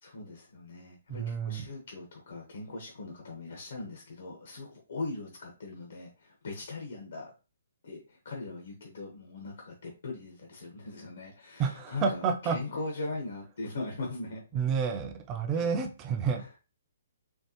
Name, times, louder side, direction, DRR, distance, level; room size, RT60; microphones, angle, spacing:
voice 1, 0.0-7.3 7.8-14.7 15.5-15.8 16.4-16.5, left 3 dB, 70° left, 0 dB, 1.2 m, -40 dB
voice 2, 1.2-1.7 11.6-12.6 14.5-16.4, right 6 dB, 20° right, 5 dB, 0.5 m, -29 dB
4.4 x 2.8 x 2.9 m, 0.31 s
hypercardioid pair, 165°, 0 cm